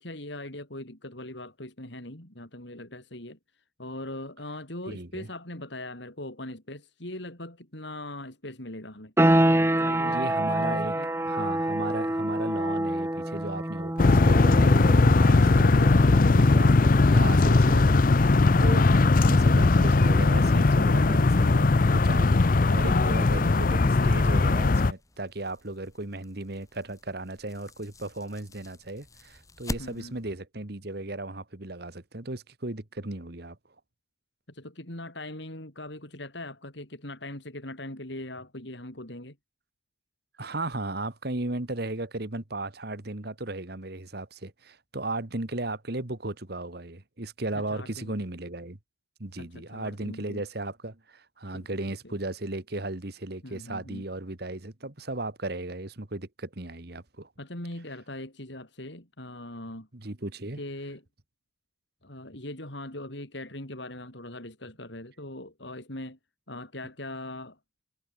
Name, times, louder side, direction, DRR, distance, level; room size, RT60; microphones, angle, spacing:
voice 1, 0.0-3.4 3.8-9.1 9.7-11.1 29.8-30.2 34.5-39.4 47.6-48.1 49.4-50.4 51.5-51.7 52.0-52.2 53.4-54.0 57.4-59.9 60.6-61.0 62.0-66.2 66.5-67.6, left 1 dB, 65° left, 5.2 m, -40 dB
voice 2, 4.9-5.3 10.0-11.0 11.3-33.6 40.4-48.8 49.2-57.3 59.9-60.6, right 2 dB, 55° right, 1.8 m, -36 dB
sound 1, 9.2-19.7, right 1 dB, 15° right, 1.2 m, -28 dB
sound 2, 14.0-24.9, left 3 dB, 45° left, 0.6 m, -19 dB
sound 3, 24.8-30.4, left 1 dB, 15° left, 4.9 m, -43 dB
head